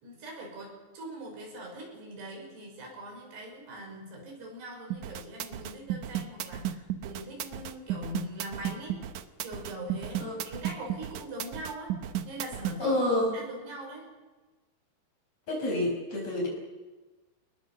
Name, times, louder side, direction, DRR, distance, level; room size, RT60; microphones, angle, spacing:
voice 1, 0.0-9.0 9.4-12.0 12.2-13.0 13.3-14.1, right 1 dB, 65° right, 1 dB, 7.9 m, -42 dB
sound 1, 4.9-12.8, right 11 dB, 80° right, 1.7 m, -34 dB
voice 2, 12.8-13.4 15.5-16.5, left 1 dB, 35° left, 0 dB, 7.0 m, -28 dB
28.5 x 20.5 x 7.5 m, 1.2 s
omnidirectional pair, 5.1 m